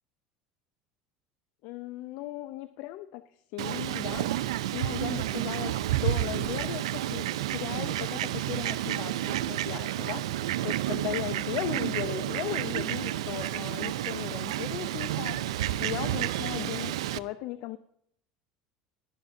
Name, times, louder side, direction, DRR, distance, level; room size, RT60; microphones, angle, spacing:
voice 1, 1.6-4.3 4.7-17.8, left 15 dB, 65° left, 13 dB, 0.5 m, -37 dB
Fowl, 3.6-17.2, right 13 dB, 90° right, 0.4 m, -30 dB
18.5 x 12.0 x 2.6 m, 0.69 s
supercardioid pair, 100°, 3 cm